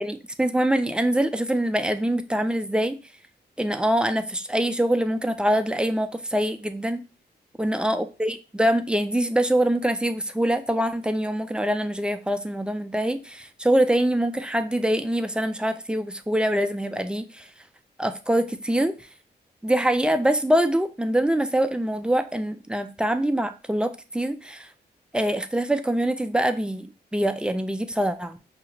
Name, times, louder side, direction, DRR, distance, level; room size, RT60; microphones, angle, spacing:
voice 1, 0.0-3.0 3.6-7.0 7.6-17.3 18.0-18.9 19.6-24.7 25.1-26.9 27.1-28.4, right 1 dB, 5° right, 8 dB, 0.4 m, -24 dB
5.6 x 2.4 x 2.9 m, 0.33 s
wide cardioid pair, 115°, 18 cm